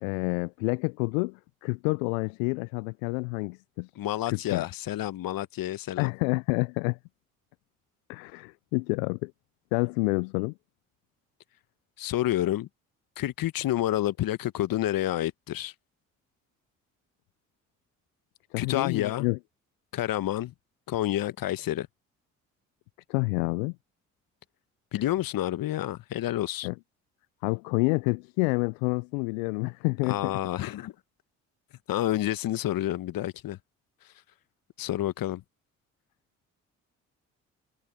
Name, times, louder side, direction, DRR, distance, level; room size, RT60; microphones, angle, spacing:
voice 1, 0.0-3.9 4.3-4.6 6.0-7.0 8.1-9.3 9.7-10.5 18.5-19.4 23.1-23.7 26.6-26.7 27.4-30.4, left 31 dB, 80° left, 0.5 m, -28 dB
voice 2, 4.0-6.1 12.0-12.7 13.2-15.7 18.6-19.3 19.9-20.5 20.9-21.9 24.9-26.7 30.1-30.9 31.9-33.6 34.8-35.4, left 13 dB, 60° left, 1.2 m, -29 dB
hypercardioid pair, 45°, 39 cm